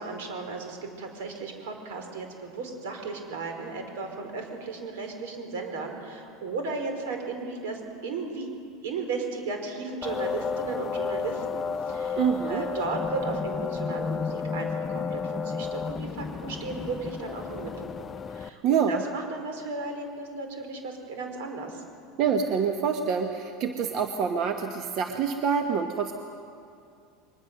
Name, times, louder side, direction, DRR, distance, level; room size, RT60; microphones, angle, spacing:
voice 1, 0.0-8.5 8.8-12.2 12.5-21.8, right 3 dB, 85° right, 4 dB, 4.4 m, -35 dB
sound 1, 10.0-18.5, left 6 dB, 25° left, 0.6 m, -32 dB
voice 2, 12.2-12.6 18.6-19.0 22.2-26.1, right 6 dB, 50° right, 5 dB, 1.2 m, -26 dB
22.5 x 20.5 x 6.7 m, 2.4 s
supercardioid pair, 130°, 0 cm